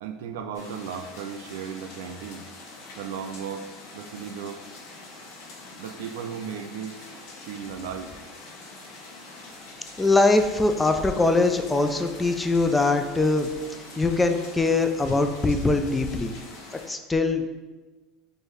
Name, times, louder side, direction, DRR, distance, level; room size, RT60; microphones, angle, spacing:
voice 1, 0.0-2.5 3.0-4.7 5.8-7.1 7.4-8.2, right 7 dB, 85° right, 7 dB, 0.4 m, -36 dB
sound 1, 0.5-16.9, left 2 dB, 70° left, 0.9 m, -44 dB
voice 2, 10.0-13.5 14.0-16.3 16.9-17.6, left 3 dB, 15° left, 6 dB, 0.4 m, -22 dB
4.5 x 2.6 x 3.3 m, 1.2 s
supercardioid pair, 105°, 0 cm